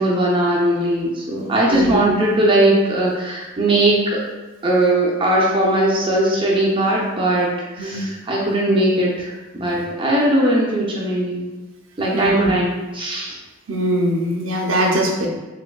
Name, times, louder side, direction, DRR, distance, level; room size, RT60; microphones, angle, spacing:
voice 1, 0.0-4.2 4.6-11.5 12.0-13.3, right 1 dB, 25° right, -4 dB, 0.5 m, -19 dB
voice 2, 1.7-2.0 7.8-8.0 12.1-12.5 13.7-15.3, right 1 dB, 75° right, 0 dB, 0.7 m, -21 dB
3.4 x 3.3 x 2.2 m, 1.2 s
head